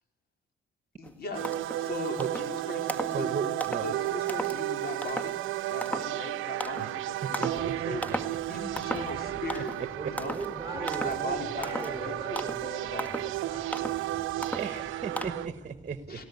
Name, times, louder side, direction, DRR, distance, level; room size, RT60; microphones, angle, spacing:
voice 1, 1.0-1.5 1.8-3.3 3.8-8.0 8.5-9.7 10.0-10.4 10.7-13.3 14.6-14.9 15.2-15.4 16.1-16.2, left 3 dB, 50° left, 3 dB, 4.9 m, -39 dB
sound 1, 1.0-1.1 1.4-1.8 2.2-2.5 2.9-3.2 3.6-3.9 4.3-4.6 5.0-5.4 5.8-6.1 6.6-6.9 7.3-7.7 8.0-8.4 8.8-9.2 9.5-9.8 10.2-10.5 10.9-11.2 11.6-12.0 12.4-12.7 13.0-13.3 13.7-14.0 14.4-14.8 15.2-15.3, right 1 dB, 5° left, 1.8 m, -35 dB
sound 2, 1.3-15.5, right 15 dB, 90° right, 0.7 m, -33 dB
voice 2, 3.1-4.0 6.8-6.9 7.2-8.2 14.6-16.2, right 6 dB, 40° right, 9 dB, 1.3 m, -36 dB
voice 3, 7.6-8.2 10.0-14.6, right 2 dB, 20° right, 4 dB, 5.7 m, -40 dB
19.0 x 18.5 x 9.7 m, 1.1 s
cardioid pair, 90°, 20 cm